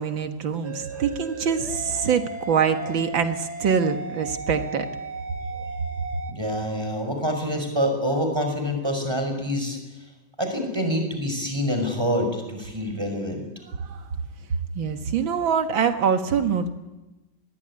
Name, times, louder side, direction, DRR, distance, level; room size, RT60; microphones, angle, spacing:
voice 1, 0.0-4.9 13.8-14.0 14.8-16.7, right 6 dB, 90° right, 7 dB, 2.3 m, -24 dB
sound 1, 0.6-6.3, right 3 dB, 35° right, 2.3 m, -36 dB
voice 2, 6.3-9.8 10.4-13.4, equal, 15° right, 5 dB, 5.6 m, -26 dB
27.0 x 20.5 x 9.9 m, 1.0 s
omnidirectional pair, 2.0 m